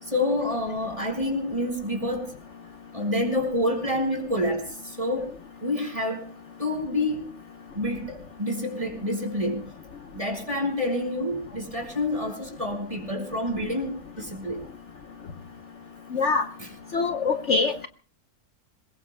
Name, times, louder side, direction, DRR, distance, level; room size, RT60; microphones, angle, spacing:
voice 1, 0.0-2.3 2.9-5.3 5.6-6.3 6.6-7.3 7.7-9.7 10.1-14.7 16.6-16.7, left 1 dB, 20° right, 5.3 m, -28 dB
voice 2, 16.1-16.4 16.9-17.9, left 4 dB, 55° left, 1.2 m, -23 dB
27.0 x 22.0 x 2.2 m
omnidirectional pair, 1.5 m